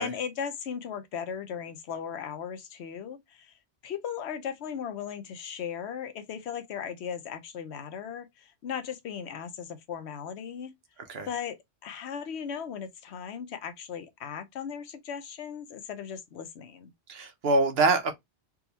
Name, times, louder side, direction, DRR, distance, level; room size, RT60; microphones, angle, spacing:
voice 1, 0.0-3.5 3.8-10.7 11.3-11.6 11.8-16.9, left 7 dB, 75° left, 0.9 m, -37 dB
voice 2, 17.1-18.1, right 3 dB, 65° right, 1.0 m, -24 dB
3.6 x 2.3 x 2.7 m
omnidirectional pair, 1.2 m